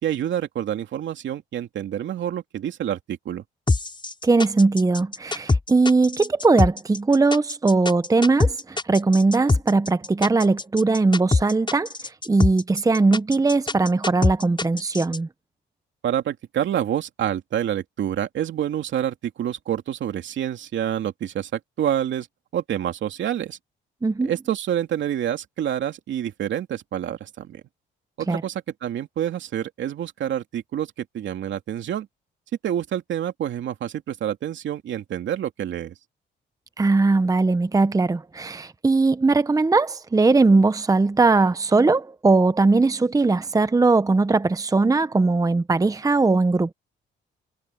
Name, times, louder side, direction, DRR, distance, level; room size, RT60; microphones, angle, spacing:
voice 1, 0.0-3.4 16.0-22.3 22.5-23.6 24.2-27.6 28.2-32.1 32.6-35.9, right 10 dB, 70° right, 2.8 m, -27 dB
sound 1, 3.7-15.2, left 3 dB, 25° left, 6.8 m, -23 dB
voice 2, 4.2-15.3 24.0-24.3 28.3-28.4 36.8-46.7, right 3 dB, 15° right, 0.9 m, -20 dB
cardioid pair, 90°, 20 cm